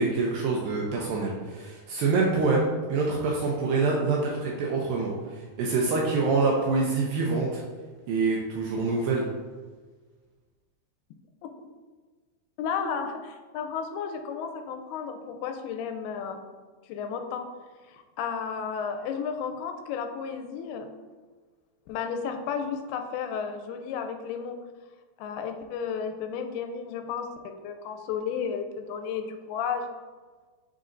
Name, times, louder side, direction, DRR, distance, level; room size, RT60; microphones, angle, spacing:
voice 1, 0.0-7.6 8.1-9.3, right 3 dB, 75° right, -2 dB, 2.3 m, -26 dB
voice 2, 12.6-16.5 16.9-17.5 17.9-20.9 21.9-24.6 25.2-29.9, left 6 dB, 85° left, 5 dB, 2.5 m, -33 dB
10.0 x 3.9 x 2.6 m, 1.4 s
omnidirectional pair, 4.5 m